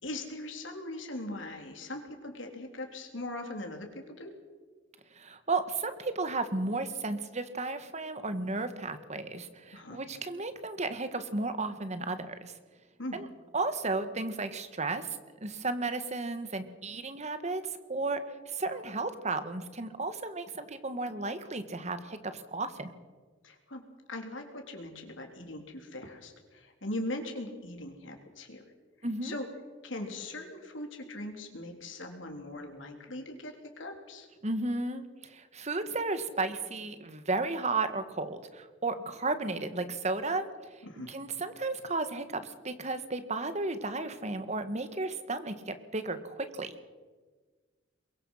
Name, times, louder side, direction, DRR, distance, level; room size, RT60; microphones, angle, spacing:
voice 1, 0.0-4.3 9.7-10.0 13.0-13.2 23.4-23.8 24.1-28.6 29.2-29.5 29.8-34.3 40.8-41.1, left 1 dB, 80° left, 3 dB, 3.8 m, -40 dB
voice 2, 5.1-12.5 13.1-13.3 13.5-17.6 17.9-18.2 18.5-22.9 29.0-29.4 34.4-40.8 41.1-46.7, right 3 dB, 35° right, 10 dB, 1.6 m, -34 dB
22.5 x 21.5 x 5.8 m, 1.4 s
head